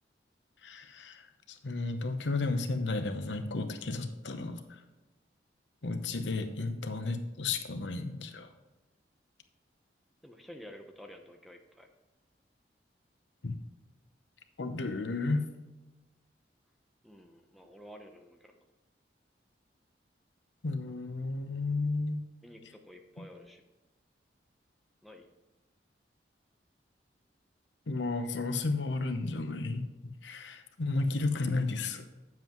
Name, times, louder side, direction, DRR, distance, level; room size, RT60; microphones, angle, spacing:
voice 1, 0.6-4.8 5.8-8.5 13.4-13.6 14.6-15.5 20.6-22.2 27.9-29.9 30.2-32.0, left 3 dB, 90° left, 8 dB, 0.9 m, -33 dB
voice 2, 10.2-11.9 17.0-18.6 22.4-23.6 25.0-25.3, equal, ahead, 3 dB, 0.8 m, -51 dB
9.2 x 7.6 x 3.1 m, 1.1 s
head